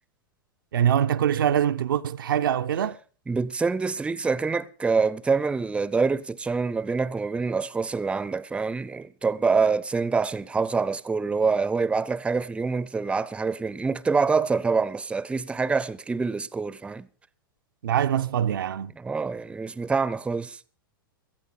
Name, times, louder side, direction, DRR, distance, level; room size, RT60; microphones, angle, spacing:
voice 1, 0.7-3.0 17.8-18.9, right 9 dB, 70° right, 0.6 m, -23 dB
voice 2, 3.3-17.1 19.0-20.6, right 4 dB, 10° right, 0.6 m, -26 dB
17.5 x 13.5 x 4.0 m
figure-of-eight pair, 95°, 12 cm